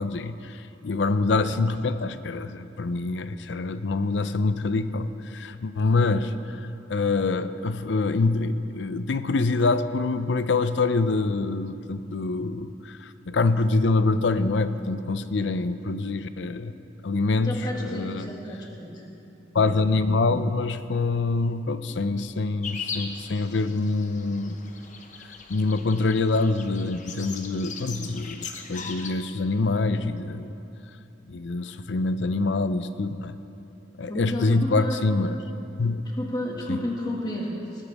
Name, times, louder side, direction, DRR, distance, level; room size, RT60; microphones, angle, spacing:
voice 1, 0.0-6.6 6.9-16.7 17.0-18.3 19.5-24.6 25.5-30.5 31.3-33.4 34.0-35.4 35.8-36.0 36.7-36.8, left 3 dB, 90° left, 12 dB, 0.6 m, -25 dB
voice 2, 17.4-19.0 34.1-35.0 36.0-37.9, left 1 dB, 25° left, -2 dB, 2.0 m, -31 dB
sound 1, 22.6-29.1, left 5 dB, 45° left, 1.0 m, -39 dB
20.5 x 14.5 x 3.5 m, 2.9 s
head